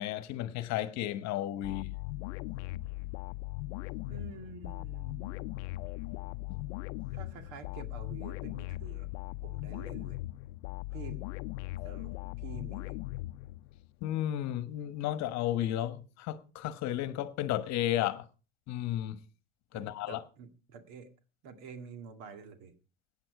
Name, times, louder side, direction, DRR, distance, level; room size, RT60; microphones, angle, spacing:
voice 1, 0.0-1.9 6.5-6.6 14.0-18.2 18.7-19.2 19.7-20.2, left 13 dB, 50° left, 1.3 m, -33 dB
sound 1, 1.6-13.9, left 18 dB, 85° left, 0.6 m, -39 dB
voice 2, 4.1-5.8 7.1-9.1 9.4-10.2 10.9-11.3 11.8-13.0 19.7-21.1 21.4-22.7, right 5 dB, 60° right, 2.1 m, -48 dB
16.5 x 9.0 x 4.8 m
supercardioid pair, 120°, 34 cm